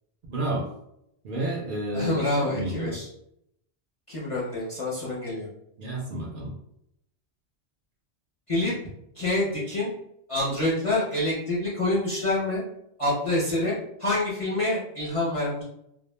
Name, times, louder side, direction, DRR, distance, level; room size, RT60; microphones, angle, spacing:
voice 1, 0.3-0.7 1.2-3.0 5.8-6.5, right 1 dB, 60° right, -2 dB, 0.6 m, -30 dB
voice 2, 1.9-3.1 4.1-5.5 8.5-8.7 9.2-9.9 10.3-12.6 13.0-15.6, left 2 dB, 40° left, -7 dB, 0.5 m, -27 dB
2.0 x 2.0 x 3.1 m, 0.77 s
omnidirectional pair, 1.1 m